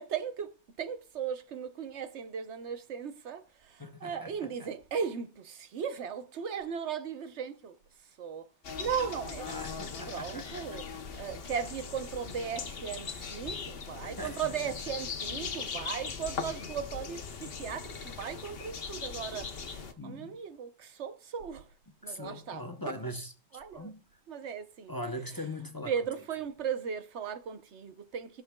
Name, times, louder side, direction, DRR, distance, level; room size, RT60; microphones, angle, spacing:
voice 1, 0.0-7.8 8.0-8.5 8.8-9.5 10.1-10.8 11.2-21.7 22.0-23.0 23.5-23.9 24.3-24.9 25.4-25.5 25.8-28.4, right 7 dB, 90° right, 1.2 m, -37 dB
voice 2, 3.8-4.3 4.6-4.7 9.4-10.8 11.1-11.2 14.0-14.5 20.0-20.4 22.0-23.3 23.7-24.0 24.9-25.9, left 1 dB, 20° left, 0.7 m, -41 dB
sound 1, 8.6-19.9, left 5 dB, 60° left, 1.1 m, -40 dB
19.5 x 6.6 x 2.3 m
omnidirectional pair, 1.1 m